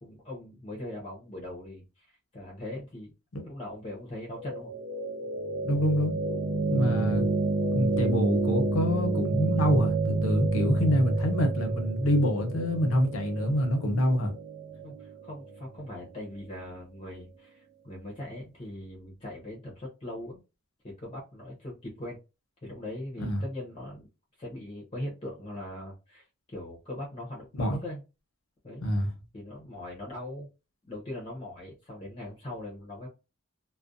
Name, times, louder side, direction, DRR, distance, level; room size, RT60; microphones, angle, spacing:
voice 1, 0.0-3.1 3.4-4.7 14.8-20.4 20.8-22.2 22.6-24.1 24.4-28.0 28.6-28.9 29.3-30.5 30.9-33.1, left 1 dB, 30° left, 0.6 m, -40 dB
sound 1, 4.3-16.3, right 2 dB, 60° right, 0.5 m, -29 dB
voice 2, 5.6-6.2 6.7-7.3 7.7-14.3 23.2-23.4 27.6-27.8 28.8-29.1, equal, 85° left, 0.7 m, -26 dB
2.4 x 2.1 x 2.5 m
head